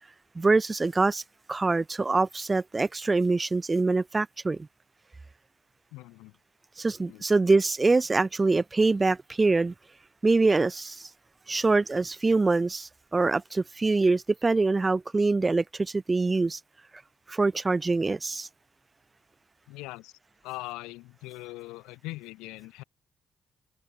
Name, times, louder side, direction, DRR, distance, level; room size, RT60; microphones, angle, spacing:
voice 1, 0.4-1.2 1.5-4.7 6.8-9.7 10.2-11.1 11.5-16.6 17.3-18.5, right 3 dB, 30° right, 0.6 m, -24 dB
voice 2, 5.9-6.4 7.0-7.2 19.7-20.1 20.4-22.8, left 21 dB, 90° left, 3.0 m, -41 dB
supercardioid pair, 50°, 0 cm